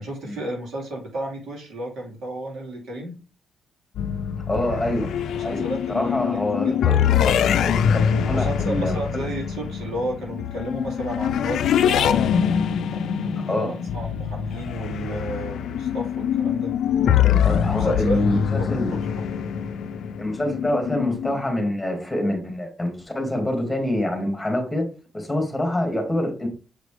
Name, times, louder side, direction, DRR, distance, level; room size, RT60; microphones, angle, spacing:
voice 1, 0.0-3.2 5.3-6.4 6.6-6.8 8.1-12.3 12.9-16.7 17.5-18.5, right 1 dB, 80° right, 3.1 m, -32 dB
sound 1, 4.0-21.4, left 8 dB, 80° left, 0.4 m, -24 dB
voice 2, 4.5-5.1 5.4-7.0 7.2-8.0 8.3-9.0 13.5-13.8 17.4-18.9 20.2-24.9 25.1-26.5, left 1 dB, 10° left, 2.2 m, -26 dB
6.7 x 5.0 x 3.4 m
cardioid pair, 115°, 0 cm